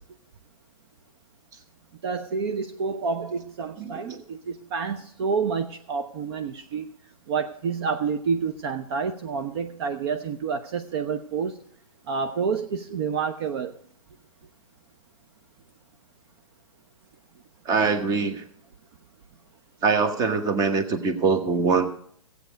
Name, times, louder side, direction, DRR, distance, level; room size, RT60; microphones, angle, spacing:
voice 1, 2.0-6.9 7.3-11.6 12.1-13.7, right 5 dB, 45° right, 9 dB, 0.8 m, -28 dB
voice 2, 3.8-4.2 17.6-18.4 19.8-21.9, right 4 dB, 20° right, 8 dB, 1.1 m, -23 dB
15.0 x 8.3 x 5.1 m, 0.67 s
hypercardioid pair, 125°, 18 cm